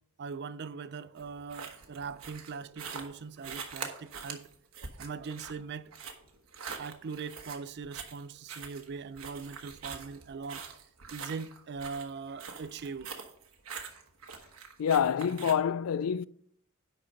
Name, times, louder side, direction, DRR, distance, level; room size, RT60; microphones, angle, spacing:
voice 1, 0.2-4.5 5.0-5.9 6.8-10.8 11.1-13.2, right 5 dB, 50° right, 0.4 m, -41 dB
sound 1, 1.2-15.5, right 6 dB, 65° right, 1.2 m, -44 dB
voice 2, 14.8-16.3, left 8 dB, 75° left, 0.3 m, -27 dB
10.5 x 4.2 x 6.3 m
head